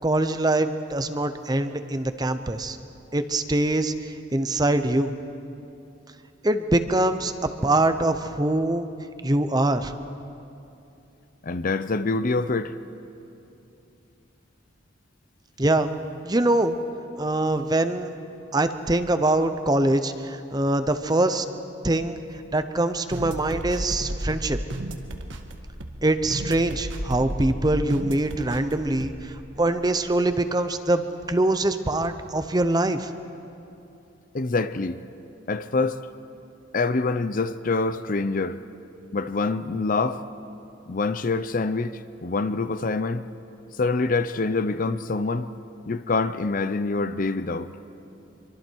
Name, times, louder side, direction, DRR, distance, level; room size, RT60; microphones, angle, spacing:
voice 1, 0.0-2.8 3.1-5.1 6.4-7.3 7.6-8.9 9.2-9.9 15.6-15.9 16.2-16.7 17.2-18.1 18.5-21.5 21.8-22.2 22.5-24.6 26.0-33.1, right 2 dB, 20° right, 0.7 m, -23 dB
voice 2, 11.4-12.7 34.3-35.0 35.5-36.0 36.7-38.6 39.1-40.2 40.9-43.3 43.8-45.5 45.9-47.7, left 3 dB, 45° left, 0.6 m, -25 dB
sound 1, 23.1-29.4, right 1 dB, 80° right, 1.5 m, -33 dB
25.5 x 24.0 x 4.6 m
head